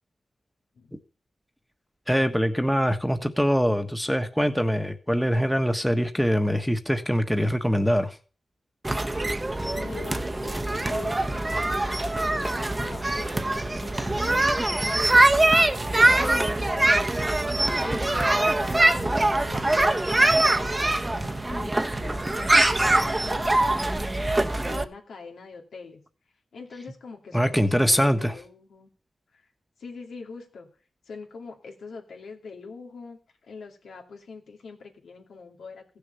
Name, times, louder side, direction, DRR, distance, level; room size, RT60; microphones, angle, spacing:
voice 1, 2.1-8.1 27.3-28.3, equal, ahead, 7 dB, 1.4 m, -23 dB
sound 1, 8.8-24.8, right 2 dB, 25° right, 1.1 m, -23 dB
voice 2, 9.7-15.3 16.2-17.3 17.5-24.1 24.6-26.0 26.5-28.9 29.3-29.4 29.8-30.7 31.1-35.9, left 4 dB, 85° left, 1 dB, 2.6 m, -43 dB
15.5 x 6.7 x 6.9 m, 0.40 s
cardioid pair, 55°, 0 cm